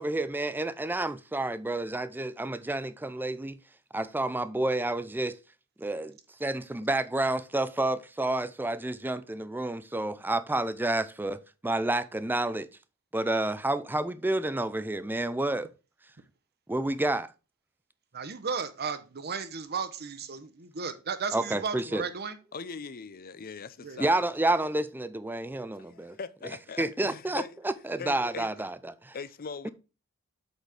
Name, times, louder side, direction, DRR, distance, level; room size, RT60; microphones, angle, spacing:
voice 1, 0.0-3.6 3.9-5.4 5.8-12.7 13.1-15.7 16.7-17.3 21.3-22.0 24.0-26.2 26.8-28.8 29.0-29.2 29.6-29.7, right 2 dB, 10° right, 0.5 m, -29 dB
voice 2, 18.1-22.4 23.8-24.0, right 5 dB, 45° right, 1.0 m, -34 dB
voice 3, 22.5-24.2 25.8-27.6 28.0-28.5 29.1-29.7, left 5 dB, 40° left, 0.5 m, -41 dB
8.1 x 4.3 x 4.9 m
head